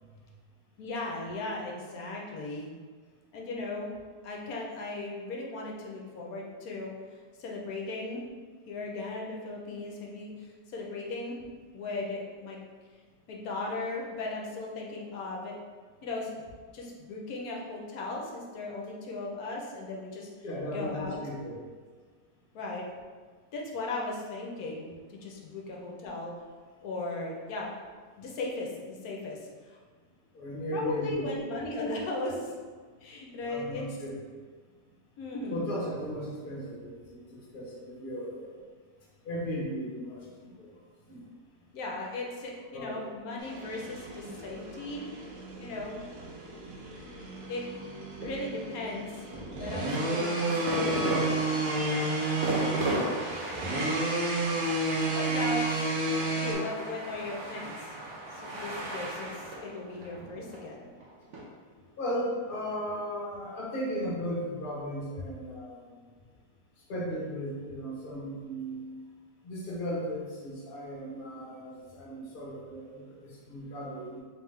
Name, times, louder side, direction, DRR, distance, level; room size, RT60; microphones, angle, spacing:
voice 1, 0.8-2.7 3.3-3.9 4.2-6.9 7.4-8.2 8.7-11.4 11.7-12.6 13.3-15.5 16.0-16.3 16.7-20.3 20.7-21.2 22.5-22.8 23.5-26.3 26.8-27.7 28.2-29.4 29.7-29.8 30.7-32.5 33.0-33.8 35.2-35.6 41.7-45.1 45.6-46.0 47.5-47.6 48.2-49.3 49.6-51.1 55.1-55.9 56.4-57.9 58.3-60.9, left 2 dB, 65° left, -2 dB, 1.1 m, -37 dB
voice 2, 20.4-21.6 30.3-31.3 31.7-31.8 33.4-34.1 35.5-38.6 39.2-40.7 41.1-41.3 42.7-43.1 48.1-48.2 52.2-52.4 58.5-58.6 61.7-66.0 66.9-68.8 69.4-74.2, equal, 40° left, -4 dB, 0.9 m, -36 dB
sound 1, 43.4-56.5, right 2 dB, 75° right, 1.3 m, -31 dB
sound 2, 49.9-61.4, right 1 dB, 55° right, 0.9 m, -36 dB
3.5 x 3.5 x 3.2 m, 1.5 s
omnidirectional pair, 1.8 m